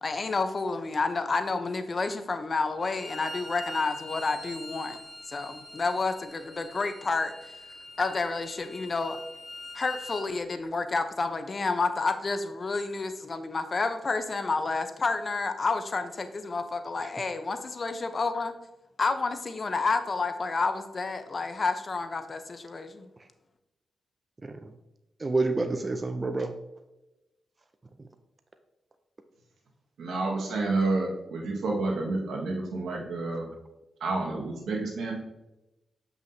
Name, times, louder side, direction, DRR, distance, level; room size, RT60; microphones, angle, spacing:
voice 1, 0.0-5.0 5.3-7.5 8.0-9.2 9.7-18.5 19.0-23.1, left 3 dB, 45° left, 9 dB, 0.8 m, -30 dB
Bowed string instrument, 2.8-10.3, left 1 dB, 25° left, 1.9 m, -43 dB
voice 2, 24.4-24.7 25.2-26.5 28.0-28.1, right 3 dB, 35° right, 7 dB, 0.5 m, -29 dB
voice 3, 30.0-33.5 34.0-35.2, right 3 dB, 80° right, -1 dB, 1.7 m, -29 dB
7.6 x 5.9 x 2.8 m, 0.98 s
cardioid pair, 55°, 0 cm